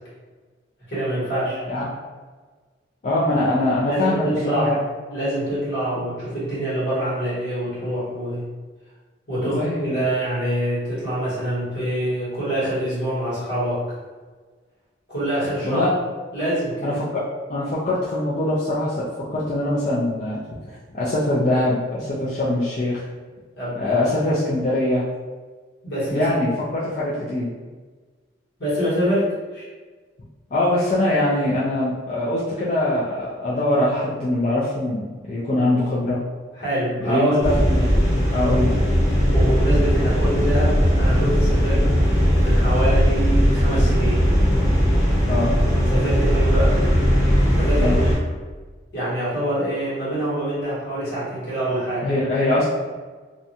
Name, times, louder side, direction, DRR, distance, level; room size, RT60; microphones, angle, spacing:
voice 1, 0.9-1.6 3.8-4.8 5.1-8.5 9.3-13.8 15.1-15.8 16.3-17.0 23.6-24.1 25.8-26.3 28.6-29.7 36.6-37.5 39.3-41.8 42.4-44.3 45.9-46.8 47.5-48.1 48.9-52.1, right 1 dB, 65° left, -9 dB, 1.4 m, -25 dB
voice 2, 3.0-4.8 9.4-10.0 15.6-15.9 16.8-17.2 17.5-20.4 20.7-23.1 23.8-25.1 26.1-27.5 30.5-36.2 37.0-37.8 38.3-38.7 45.3-45.5 47.8-48.0 52.0-52.6, left 1 dB, 40° left, -8 dB, 0.4 m, -22 dB
sound 1, 37.4-48.2, equal, 20° left, 0.9 m, -18 dB
2.5 x 2.2 x 2.7 m, 1.4 s
head